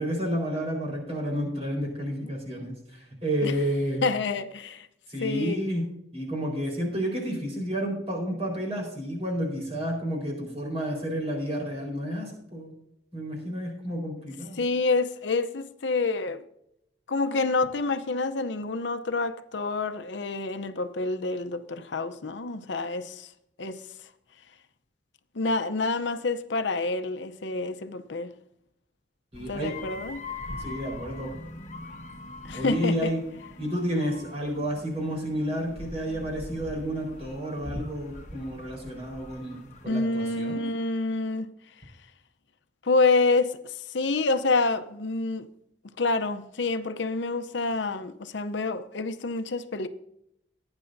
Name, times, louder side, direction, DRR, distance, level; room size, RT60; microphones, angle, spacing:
voice 1, 0.0-4.0 5.1-12.8 13.1-14.6 29.3-29.8 30.6-31.3 32.5-33.2 33.6-40.6, equal, 35° right, 4.3 m, -31 dB
voice 2, 4.0-4.9 5.2-5.7 14.6-16.4 17.1-23.3 23.6-23.8 25.3-28.3 29.5-30.2 32.4-33.1 39.9-41.5 42.8-45.5 46.0-49.9, left 3 dB, 80° left, 0.7 m, -27 dB
sound 1, 29.3-39.9, left 2 dB, 40° left, 1.1 m, -42 dB
18.0 x 9.7 x 2.7 m
head